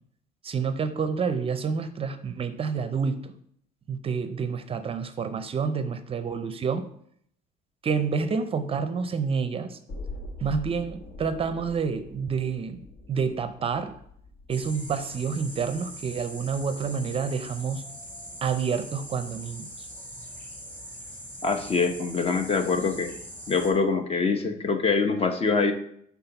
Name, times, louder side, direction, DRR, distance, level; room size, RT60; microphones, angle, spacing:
voice 1, 0.4-3.3 3.9-6.9 7.8-9.8 10.4-12.8 13.1-13.9 14.5-17.8 18.4-19.7, right 5 dB, 35° right, 10 dB, 0.5 m, -28 dB
sound 1, 9.9-15.8 16.2-16.3, left 2 dB, 65° left, 1.3 m, -43 dB
sound 2, 14.5-23.7, equal, 10° left, 1.5 m, -42 dB
voice 2, 21.4-23.1 23.5-25.7, left 4 dB, 35° left, 7 dB, 0.8 m, -24 dB
5.7 x 3.6 x 5.7 m, 0.67 s
cardioid pair, 110°, 17 cm